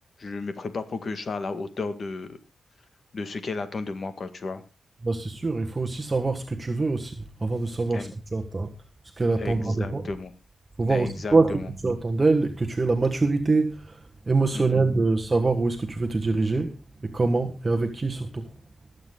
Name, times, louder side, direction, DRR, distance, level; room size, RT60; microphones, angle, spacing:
voice 1, 0.2-2.4 3.1-4.6 7.9-8.1 9.4-10.3 10.9-11.7 14.5-14.8, left 3 dB, 50° left, 1.8 m, -33 dB
voice 2, 5.0-8.7 9.2-10.0 10.8-18.5, right 3 dB, 30° right, 1.3 m, -25 dB
20.0 x 8.0 x 3.8 m
cardioid pair, 95°, 0 cm